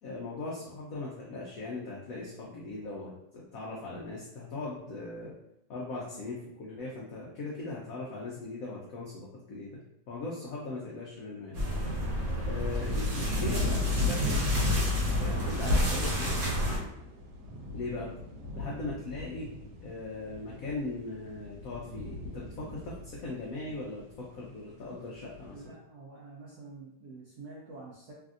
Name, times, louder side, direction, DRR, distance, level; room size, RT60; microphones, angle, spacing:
voice 1, 0.0-5.3 5.7-9.8 10.1-11.6 12.5-14.5 15.0-16.3 17.7-18.1 18.6-19.5 19.8-25.7, left 3 dB, 80° left, -4 dB, 0.7 m, -39 dB
sound 1, 11.5-16.8, left 1 dB, 55° right, 1.3 m, -29 dB
sound 2, 13.2-24.5 24.9-25.4, left 1 dB, 90° right, 1.4 m, -37 dB
voice 2, 25.5-28.1, right 3 dB, 70° right, -4 dB, 0.9 m, -47 dB
3.2 x 2.6 x 2.4 m, 0.80 s
omnidirectional pair, 2.1 m